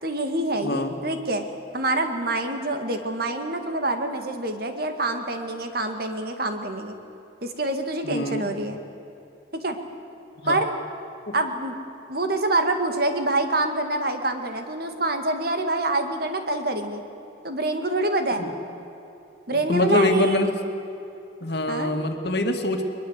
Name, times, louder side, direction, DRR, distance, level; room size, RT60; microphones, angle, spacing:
voice 1, 0.0-1.4 1.7-7.0 7.4-8.8 9.5-9.8 10.5-10.7 11.3-11.8 12.1-17.0 17.4-18.4 19.5-20.5 21.7-21.9, right 2 dB, 50° right, 6 dB, 2.1 m, -26 dB
voice 2, 0.6-0.9 8.0-8.5 10.4-10.6 18.4-18.5 19.5-20.5 21.4-22.8, left 1 dB, 60° left, 5 dB, 2.2 m, -24 dB
22.0 x 21.5 x 8.3 m, 2.9 s
head